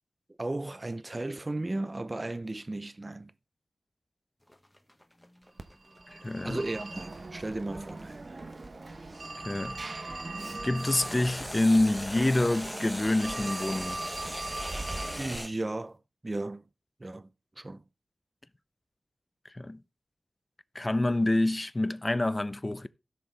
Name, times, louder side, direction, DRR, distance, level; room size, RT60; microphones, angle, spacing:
voice 1, 0.4-3.3 6.4-8.3 15.2-16.0 16.2-16.6 17.0-17.3 17.6-17.8, right 2 dB, 25° right, 0.6 m, -35 dB
sound 1, 4.5-9.7 10.8-15.5, equal, 5° left, 1.1 m, -40 dB
Telephone, 5.6-15.4, right 2 dB, 45° right, 1.0 m, -40 dB
voice 2, 6.1-6.6 9.4-9.8 10.6-14.0 19.5-19.8 20.7-22.9, left 2 dB, 20° left, 0.5 m, -27 dB
16.0 x 6.7 x 3.3 m
wide cardioid pair, 105°, 0 cm